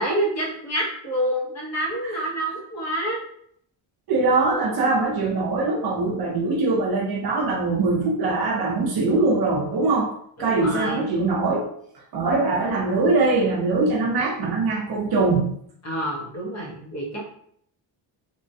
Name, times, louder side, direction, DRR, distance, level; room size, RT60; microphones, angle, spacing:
voice 1, 0.0-3.2 10.4-11.1 15.8-17.2, right 1 dB, 35° left, -4 dB, 0.9 m, -27 dB
voice 2, 4.1-10.1 10.4-11.7 12.1-15.5, right 3 dB, 50° right, -1 dB, 0.6 m, -22 dB
3.0 x 2.1 x 2.6 m, 0.66 s
cardioid pair, 160°, 47 cm